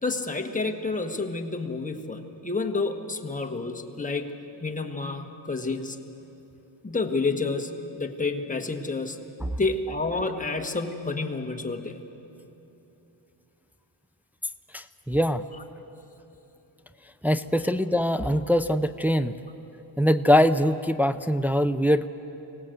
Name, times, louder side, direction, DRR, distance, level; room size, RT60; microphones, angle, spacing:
voice 1, 0.0-4.3 4.6-6.0 6.8-7.7 8.0-9.2 9.6-12.0, left 3 dB, 15° left, 3 dB, 1.5 m, -29 dB
voice 2, 14.7-15.4 17.2-19.3 20.0-22.1, equal, 5° right, 9 dB, 0.5 m, -23 dB
25.5 x 18.0 x 7.9 m, 3.0 s
cardioid pair, 105°, 47 cm